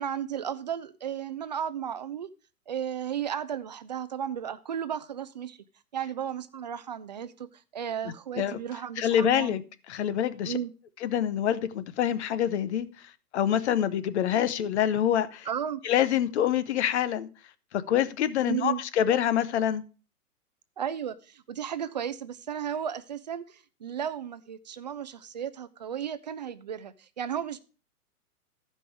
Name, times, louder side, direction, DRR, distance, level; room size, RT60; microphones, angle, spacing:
voice 1, 0.0-2.3 2.7-5.6 5.9-9.6 10.4-10.7 15.5-15.8 18.4-18.8 20.8-27.6, right 9 dB, 30° right, 0.4 m, -34 dB
voice 2, 9.0-9.6 9.9-10.6 11.0-12.9 13.3-15.5 15.8-17.3 17.7-19.8, left 10 dB, 45° left, 0.9 m, -26 dB
13.5 x 5.4 x 4.8 m
figure-of-eight pair, 120°, 46 cm